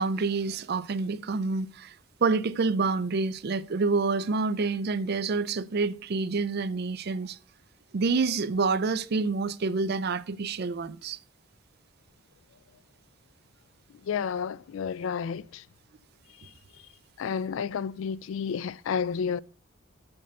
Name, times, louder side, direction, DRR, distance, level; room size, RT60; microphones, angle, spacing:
voice 1, 0.0-1.9 2.2-7.4 7.9-11.2, right 4 dB, 50° right, 0.5 m, -27 dB
voice 2, 14.0-15.6 17.2-19.4, left 6 dB, 70° left, 0.3 m, -31 dB
6.8 x 5.3 x 6.5 m
head